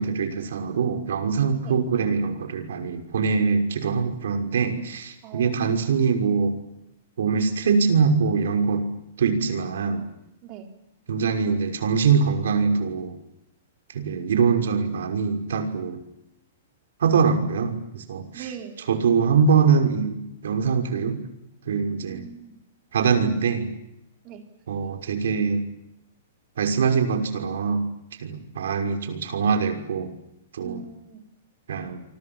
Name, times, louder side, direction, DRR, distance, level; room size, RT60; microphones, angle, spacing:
voice 1, 0.0-6.6 7.2-8.9 9.2-10.1 11.1-13.1 13.9-16.0 17.0-18.5 18.9-21.2 21.7-22.2 22.9-23.7 24.7-25.6 26.6-27.9 28.2-30.1 30.5-30.8 31.7-32.0, right 5 dB, 80° right, 6 dB, 6.0 m, -23 dB
voice 2, 5.2-5.6 10.4-10.7 18.3-18.8 22.1-22.6 24.2-24.4 30.6-31.2, right 8 dB, 30° right, 6 dB, 4.1 m, -40 dB
28.5 x 24.5 x 7.4 m, 0.82 s
hypercardioid pair, 165°, 0 cm